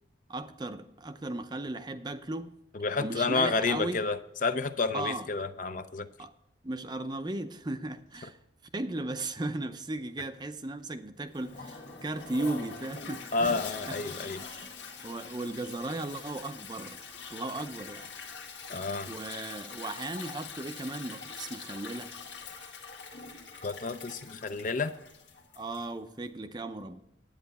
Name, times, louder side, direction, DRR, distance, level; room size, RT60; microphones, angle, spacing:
voice 1, 0.3-2.5 3.0-4.0 4.9-5.3 6.2-6.3 6.6-8.4 8.7-13.6 13.9-14.1 14.6-14.7 15.0-17.0 17.3-18.1 19.0-22.1 25.6-27.0, right 2 dB, 20° right, 9 dB, 0.5 m, -36 dB
voice 2, 2.7-6.1 13.3-14.4 18.7-19.1 23.6-24.9, left 4 dB, 45° left, 11 dB, 0.5 m, -30 dB
Toilet flush, 11.3-26.0, left 5 dB, 75° left, 1.8 m, -44 dB
10.5 x 9.0 x 4.1 m, 0.83 s
head